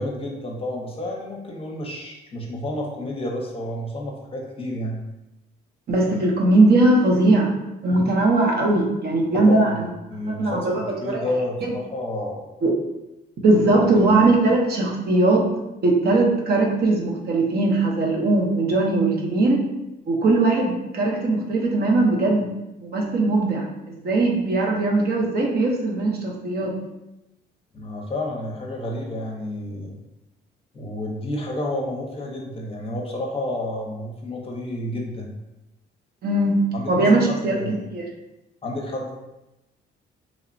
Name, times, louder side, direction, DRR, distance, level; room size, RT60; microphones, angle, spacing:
voice 1, 0.0-5.0 9.3-9.7 10.1-12.4 13.7-13.9 27.7-29.9 30.7-35.3 36.7-37.8 38.6-39.1, left 1 dB, 30° left, 0 dB, 0.6 m, -30 dB
voice 2, 5.9-7.5 7.8-9.9 10.2-11.3 12.6-12.7 13.4-15.5 15.8-19.6 20.1-22.5 22.8-26.7 36.2-37.6 37.9-38.0, right 2 dB, 55° right, -1 dB, 0.6 m, -20 dB
3.0 x 2.0 x 2.5 m, 0.96 s
cardioid pair, 90°, 20 cm